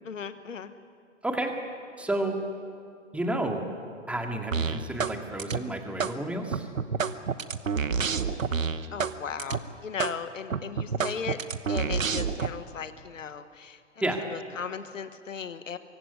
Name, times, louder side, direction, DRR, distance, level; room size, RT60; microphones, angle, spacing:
voice 1, 0.0-0.7 8.9-11.4 11.7-13.8 14.3-15.8, left 6 dB, 80° left, 11 dB, 1.4 m, -37 dB
voice 2, 2.0-2.4 3.1-3.6 4.1-6.7 14.0-14.2, right 1 dB, 5° right, 3 dB, 2.1 m, -30 dB
sound 1, 4.5-5.1 5.4-6.1 6.5-9.1 9.4-9.6 10.0-10.1 10.5-12.5, right 6 dB, 90° right, 1.1 m, -28 dB
24.0 x 16.0 x 9.7 m, 2.3 s
hypercardioid pair, 120°, 38 cm